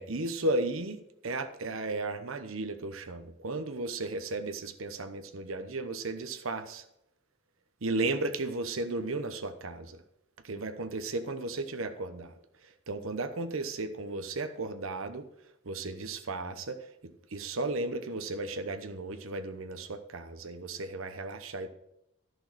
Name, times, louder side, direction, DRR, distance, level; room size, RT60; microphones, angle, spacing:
voice 1, 0.0-6.8 7.8-10.0 10.4-12.3 12.6-15.3 15.6-21.7, right 2 dB, 75° right, 9 dB, 1.0 m, -35 dB
11.5 x 6.4 x 6.2 m, 0.81 s
head